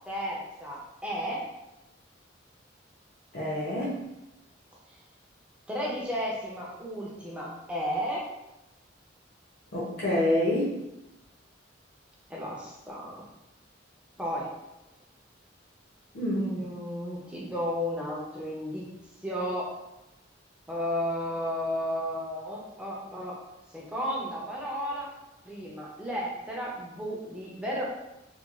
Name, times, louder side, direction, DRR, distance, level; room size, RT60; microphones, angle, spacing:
voice 1, 0.1-1.4 5.7-8.3 12.3-13.2 14.2-14.5 16.3-18.9 19.2-19.8 20.7-23.4 23.7-25.1 25.4-27.8, equal, 5° right, -4 dB, 0.5 m, -33 dB
voice 2, 3.3-4.0 9.7-10.7 16.1-16.5, left 1 dB, 50° left, -7 dB, 0.6 m, -27 dB
2.9 x 2.3 x 2.3 m, 0.96 s
head